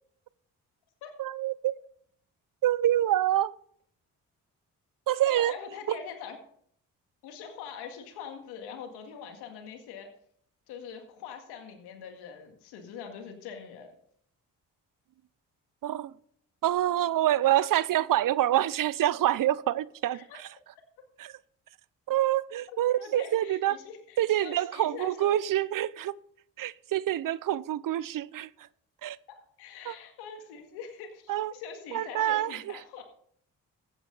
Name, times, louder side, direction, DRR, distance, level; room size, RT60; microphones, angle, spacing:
voice 1, 1.2-1.8 2.6-3.6 5.1-5.5 5.9-6.0 15.8-16.1 16.6-20.5 21.2-21.4 22.1-23.8 24.2-26.2 26.6-28.5 29.0-29.2 29.9-30.0 31.3-31.5 31.9-32.8, right 13 dB, 60° right, 0.6 m, -26 dB
voice 2, 5.3-6.4 7.2-10.1 10.7-13.9 20.1-20.4 22.9-25.3 29.3-33.0, left 7 dB, 90° left, 2.0 m, -43 dB
14.5 x 9.1 x 3.9 m
supercardioid pair, 50°, 38 cm